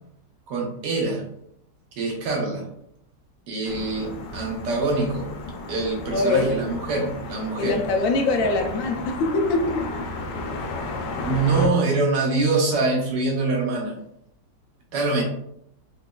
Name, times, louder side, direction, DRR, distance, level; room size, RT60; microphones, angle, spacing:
voice 1, 0.5-1.2 2.0-2.6 3.5-5.3 5.7-7.7 11.2-14.0 14.9-15.2, right 3 dB, 80° right, 0 dB, 1.5 m, -24 dB
sound 1, 3.6-11.7, left 2 dB, 80° left, 1.3 m, -34 dB
voice 2, 6.1-6.5 7.0-7.1 7.6-9.8 11.6-11.7, left 3 dB, 65° left, 2 dB, 0.8 m, -23 dB
4.0 x 3.0 x 2.3 m, 0.75 s
omnidirectional pair, 1.9 m